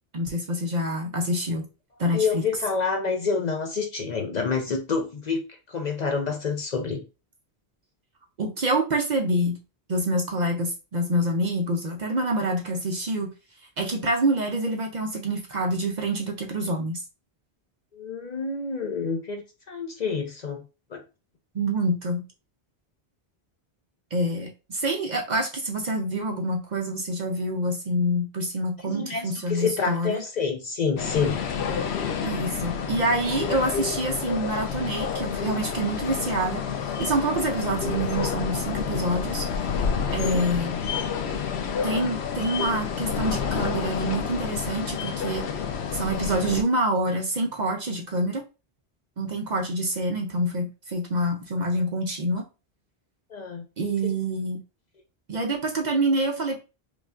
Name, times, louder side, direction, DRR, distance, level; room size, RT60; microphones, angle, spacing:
voice 1, 0.1-1.7 2.0-2.3 8.4-9.6 9.9-13.3 13.8-17.0 21.5-22.2 24.1-30.2 32.2-39.9 40.1-40.7 41.8-45.4 45.9-48.4 49.2-52.4 53.8-54.6 55.3-56.6, right 1 dB, 50° right, 0.6 m, -26 dB
voice 2, 2.1-7.0 17.9-20.6 20.9-21.0 28.8-31.4 40.4-40.5 53.3-54.1, left 5 dB, 50° left, 0.6 m, -28 dB
sound 1, 31.0-46.6, left 6 dB, 80° left, 0.9 m, -29 dB
5.0 x 2.3 x 2.4 m
omnidirectional pair, 1.1 m